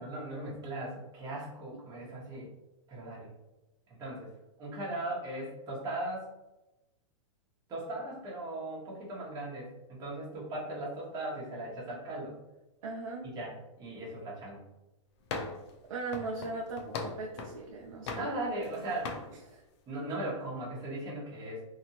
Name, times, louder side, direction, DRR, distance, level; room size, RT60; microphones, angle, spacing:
voice 1, 0.0-2.5 2.9-3.3 3.9-4.3 4.6-6.2 7.7-12.3 13.2-14.6 18.1-19.2 19.9-21.6, right 1 dB, 25° right, -5 dB, 1.1 m, -38 dB
voice 2, 12.8-13.3 15.9-18.3 19.5-19.6, right 3 dB, 80° right, 0 dB, 0.5 m, -38 dB
sound 1, 15.3-15.7 16.1-17.6 18.1-18.7 19.0-19.3, left 4 dB, 55° left, 0.5 m, -39 dB
2.8 x 2.5 x 2.8 m, 0.98 s
hypercardioid pair, 145°, 17 cm